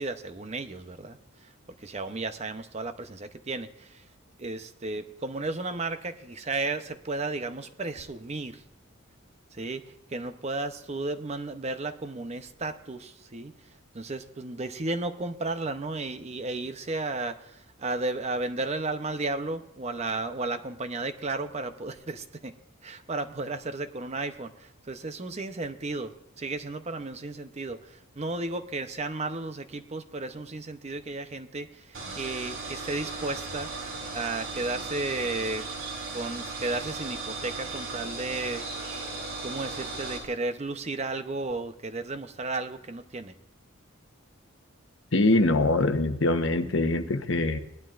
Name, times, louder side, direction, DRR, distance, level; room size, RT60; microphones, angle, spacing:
voice 1, 0.0-1.5 1.8-4.1 4.4-8.6 9.5-9.8 10.1-13.5 13.9-22.5 22.8-33.7 34.1-35.7 36.1-39.0 39.4-43.3, right 2 dB, 30° right, 9 dB, 0.7 m, -34 dB
sound 1, 31.9-40.2, right 3 dB, 80° right, 2.4 m, -36 dB
voice 2, 45.1-47.6, left 2 dB, 60° left, 7 dB, 1.0 m, -23 dB
19.0 x 12.0 x 2.5 m, 0.86 s
head